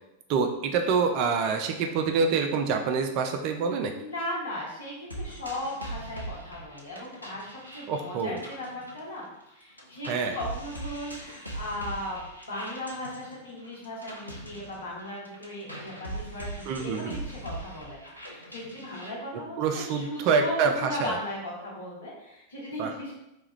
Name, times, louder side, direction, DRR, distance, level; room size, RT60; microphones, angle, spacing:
voice 1, 0.3-3.9 7.9-8.4 10.1-10.4 16.7-17.1 19.6-21.2 22.8-22.9, right 5 dB, 45° right, 4 dB, 0.3 m, -26 dB
voice 2, 4.0-23.1, left 1 dB, 70° left, -4 dB, 0.9 m, -37 dB
sound 1, 5.1-9.5 9.8-19.1, right 1 dB, 90° left, 0.4 m, -41 dB
3.0 x 2.3 x 3.0 m, 0.90 s
figure-of-eight pair, 90°, 0 cm